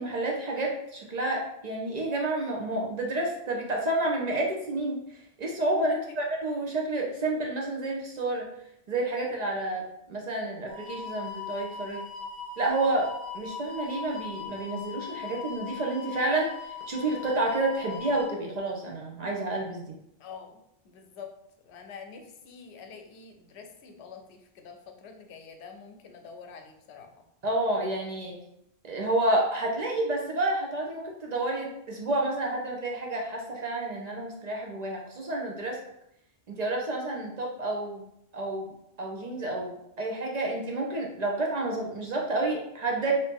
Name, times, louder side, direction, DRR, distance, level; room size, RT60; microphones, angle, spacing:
voice 1, 0.0-8.5 8.9-12.0 12.6-20.0 27.4-28.4 28.8-35.8 36.5-38.1 38.3-38.7 39.0-43.1, right 2 dB, 50° right, -1 dB, 0.5 m, -30 dB
sound 1, 10.7-18.3, left 6 dB, 20° right, 0.9 m, -40 dB
voice 2, 20.2-20.6 20.8-21.3 21.6-27.1, left 6 dB, 80° left, 4 dB, 0.8 m, -46 dB
2.7 x 2.6 x 3.5 m, 0.78 s
omnidirectional pair, 1.1 m